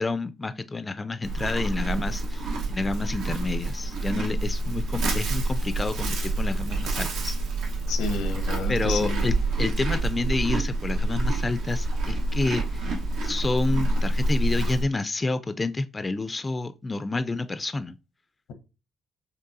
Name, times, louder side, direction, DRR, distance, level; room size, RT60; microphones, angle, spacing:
voice 1, 0.0-7.4 8.7-18.0, left 3 dB, 25° left, 0.3 m, -29 dB
Livestock farm animals working animals, 1.2-14.8, right 2 dB, 90° right, 1.0 m, -27 dB
voice 2, 7.9-9.3, left 4 dB, 90° left, 0.8 m, -31 dB
5.3 x 3.3 x 2.6 m
cardioid pair, 90°, 0 cm